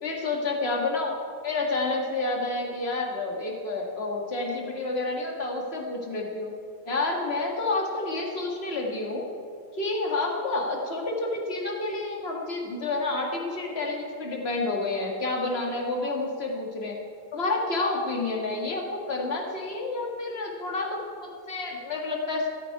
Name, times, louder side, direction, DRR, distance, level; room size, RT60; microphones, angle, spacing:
voice 1, 0.0-1.1 1.4-6.5 6.8-9.3 9.7-17.0 17.3-22.5, left 2 dB, 30° left, 0 dB, 1.1 m, -29 dB
14.0 x 13.0 x 4.7 m, 2.4 s
omnidirectional pair, 3.6 m